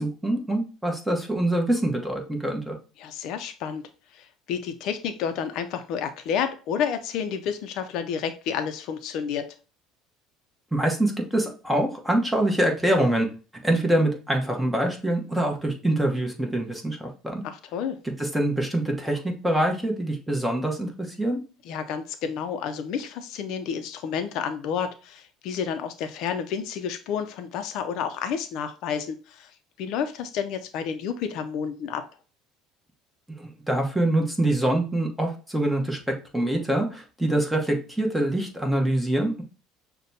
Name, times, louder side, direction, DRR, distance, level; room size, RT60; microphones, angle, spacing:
voice 1, 0.0-2.8 10.7-13.3 13.6-17.4 18.2-20.9 21.2-21.4 33.4-39.4, right 1 dB, 5° right, 2 dB, 1.0 m, -25 dB
voice 2, 3.0-3.8 4.1-9.5 17.4-18.0 21.7-29.5 29.8-32.0, left 7 dB, 65° left, 9 dB, 0.5 m, -30 dB
6.4 x 2.2 x 2.7 m, 0.35 s
cardioid pair, 120°, 0 cm